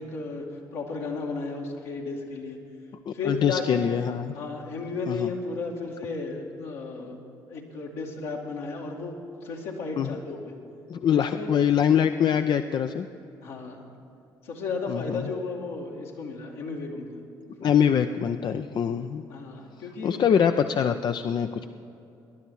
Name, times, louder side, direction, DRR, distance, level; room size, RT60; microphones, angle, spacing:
voice 1, 0.0-2.6 3.1-3.8 4.3-7.2 7.5-10.6 11.1-11.5 13.4-13.9 14.4-17.2 19.3-20.2, left 3 dB, 75° left, -1 dB, 2.1 m, -34 dB
voice 2, 3.1-4.4 5.1-5.3 10.0-10.1 10.9-13.1 14.9-15.3 17.6-19.3 20.0-21.7, left 8 dB, 50° left, 9 dB, 0.5 m, -24 dB
19.5 x 11.0 x 4.6 m, 2.7 s
hypercardioid pair, 55°, 10 cm